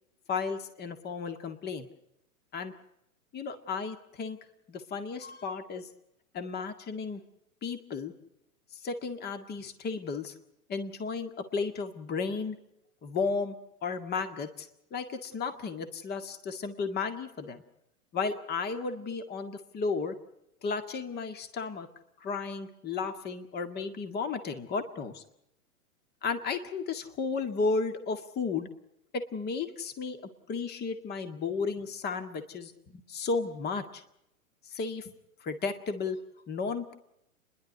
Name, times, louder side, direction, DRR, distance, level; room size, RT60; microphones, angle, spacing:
voice 1, 0.3-1.9 2.5-2.7 3.3-4.4 4.7-5.9 6.3-7.2 7.6-8.1 8.7-10.3 10.7-12.6 13.0-13.6 13.8-17.6 18.1-20.2 20.6-21.9 22.2-25.2 26.2-28.7 29.1-30.2 30.5-34.0 34.7-35.1 35.4-36.2 36.5-36.9, left 4 dB, 20° left, 9 dB, 1.9 m, -34 dB
30.0 x 11.5 x 9.3 m, 0.81 s
hypercardioid pair, 115°, 44 cm